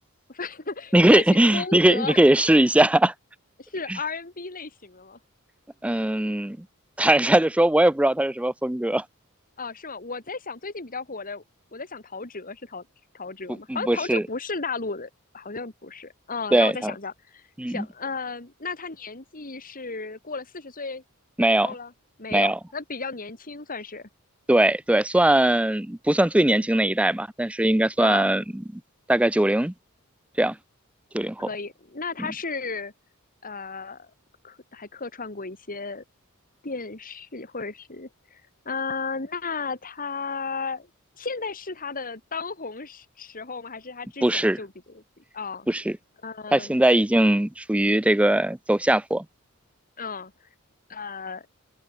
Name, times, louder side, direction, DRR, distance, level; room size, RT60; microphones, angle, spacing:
voice 1, 0.3-2.2 3.6-5.2 9.6-11.4 11.7-12.9 13.1-21.0 21.6-21.9 22.2-24.1 28.0-28.3 31.4-32.9 33.4-34.1 34.4-36.0 36.6-40.9 41.2-45.7 46.2-46.8 50.0-50.3 50.9-51.5, left 4 dB, 40° left, 3.1 m, -34 dB
voice 2, 0.9-3.1 3.9-4.0 5.8-6.6 7.0-9.0 13.7-14.2 16.5-16.9 17.6-17.8 21.4-21.7 22.3-22.6 24.5-28.8 29.1-29.7 30.4-30.6 31.1-31.5 32.2-32.3 44.2-44.6 45.7-46.0 46.5-49.2, right 1 dB, 5° right, 0.5 m, -20 dB
head